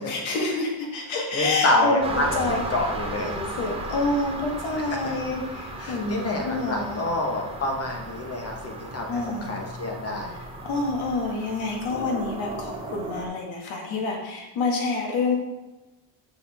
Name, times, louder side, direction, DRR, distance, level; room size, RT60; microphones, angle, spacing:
voice 1, 0.1-2.6 3.2-7.0 9.1-9.6 10.6-15.4, left 3 dB, 75° left, 0 dB, 2.1 m, -28 dB
voice 2, 1.3-3.3 4.9-5.0 5.8-10.4, left 2 dB, 30° left, 2 dB, 1.4 m, -27 dB
sound 1, 2.0-13.3, right 2 dB, 10° right, 1.0 m, -35 dB
7.0 x 6.9 x 3.6 m, 1.1 s
cardioid pair, 140°, 47 cm